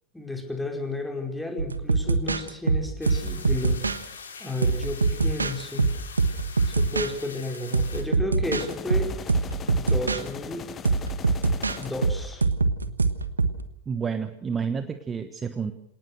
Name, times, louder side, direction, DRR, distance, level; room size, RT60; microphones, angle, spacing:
voice 1, 0.1-3.8 4.4-5.9 6.6-9.1 9.6-10.7 11.8-12.4, left 2 dB, 5° left, 3 dB, 4.9 m, -32 dB
sound 1, 1.6-4.0 4.6-7.1 7.5-10.2 10.8-13.6, right 3 dB, 80° right, 1.3 m, -24 dB
sound 2, 3.0-8.0, left 5 dB, 70° left, 3.8 m, -43 dB
sound 3, 8.4-12.4, left 7 dB, 25° left, 1.5 m, -40 dB
voice 2, 13.9-15.7, right 6 dB, 20° right, 10 dB, 1.2 m, -30 dB
26.5 x 18.5 x 6.4 m, 0.73 s
figure-of-eight pair, 90°, 0 cm